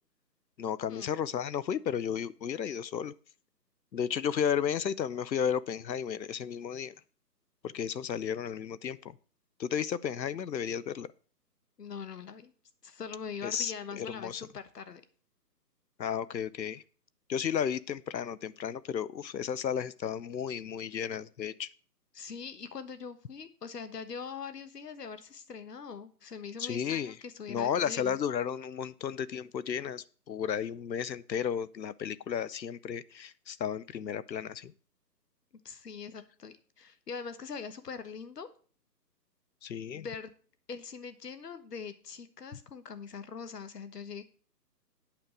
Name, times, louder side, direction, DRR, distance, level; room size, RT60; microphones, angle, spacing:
voice 1, 0.6-3.1 3.9-6.9 7.7-9.1 9.6-11.1 13.4-14.4 16.0-16.8 17.3-21.7 26.6-27.2 27.5-34.7 39.6-40.1, left 8 dB, 90° left, 18 dB, 0.8 m, -33 dB
voice 2, 11.8-12.5 12.8-15.0 22.1-28.2 35.6-38.5 39.9-40.3 40.7-44.2, left 6 dB, 70° left, 11 dB, 1.4 m, -42 dB
8.7 x 5.1 x 7.6 m, 0.41 s
hypercardioid pair, 155°, 50 cm